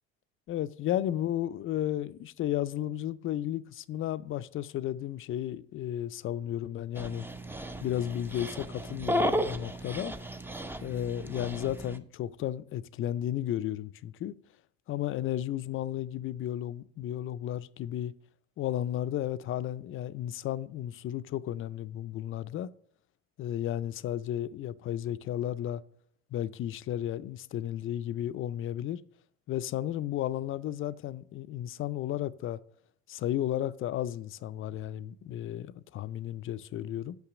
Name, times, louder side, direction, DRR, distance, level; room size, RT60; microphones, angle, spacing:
voice 1, 0.5-7.3 7.8-10.2 10.8-14.4 14.9-18.1 18.6-22.7 23.4-25.8 26.3-29.0 29.5-32.6 33.1-37.2, left 12 dB, 45° left, 0.4 m, -33 dB
Dog, 7.0-12.0, equal, 5° right, 0.5 m, -34 dB
5.9 x 5.8 x 6.0 m
hypercardioid pair, 75°, 31 cm